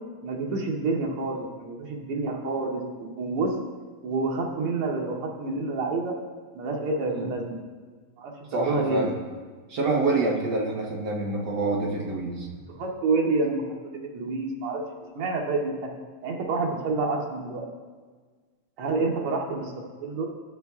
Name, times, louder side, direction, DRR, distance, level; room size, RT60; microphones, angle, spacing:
voice 1, 0.2-3.5 4.0-6.2 6.6-7.6 8.2-9.1 12.7-13.6 13.9-14.8 15.1-15.9 16.2-17.7 18.8-19.7 20.0-20.3, right 3 dB, 90° right, -1 dB, 1.8 m, -28 dB
voice 2, 8.5-9.1 9.7-12.5 18.8-18.9, right 2 dB, 60° right, -1 dB, 1.2 m, -26 dB
12.5 x 6.5 x 2.3 m, 1.5 s
omnidirectional pair, 2.4 m